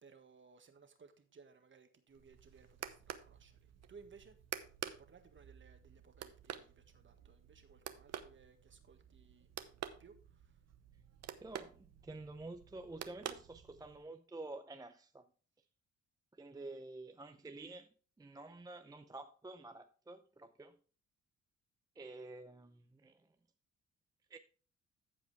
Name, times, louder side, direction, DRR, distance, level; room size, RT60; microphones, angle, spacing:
voice 1, 0.0-4.4 5.0-9.5 10.0-10.6, right 5 dB, 40° right, 1.6 m, -61 dB
sound 1, 2.1-14.0, right 9 dB, 60° right, 0.9 m, -49 dB
voice 2, 11.4-15.3 16.4-20.8 22.0-23.3 24.3-24.4, right 2 dB, 10° right, 0.5 m, -50 dB
14.5 x 4.9 x 3.4 m
cardioid pair, 90°, 30 cm